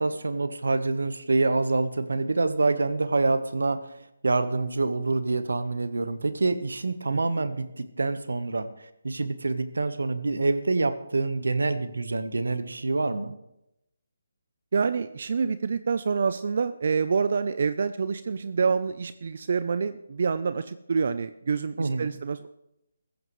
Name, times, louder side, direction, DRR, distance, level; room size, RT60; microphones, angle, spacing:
voice 1, 0.0-4.0 4.2-13.3 21.8-22.1, right 3 dB, 80° right, 11 dB, 1.2 m, -26 dB
voice 2, 14.7-22.5, right 5 dB, 55° right, 13 dB, 0.6 m, -27 dB
15.5 x 14.5 x 3.2 m, 0.85 s
figure-of-eight pair, 160°, 0 cm